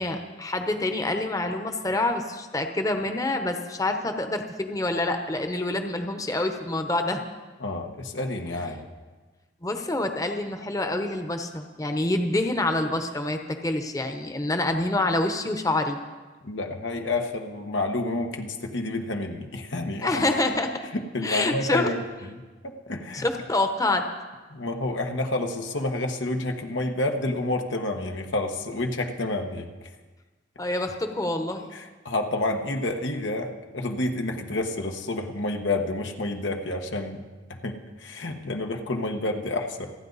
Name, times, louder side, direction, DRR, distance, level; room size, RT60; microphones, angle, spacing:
voice 1, 0.0-7.2 9.6-16.0 20.0-20.8 21.2-21.9 23.1-24.1 30.6-31.7, left 2 dB, 20° left, 5 dB, 0.9 m, -27 dB
voice 2, 7.6-8.9 16.4-20.4 20.9-22.0 22.3-23.2 24.5-29.9 31.7-37.2 37.5-39.9, left 2 dB, 90° left, 3 dB, 1.4 m, -29 dB
28.0 x 9.6 x 4.1 m, 1.3 s
head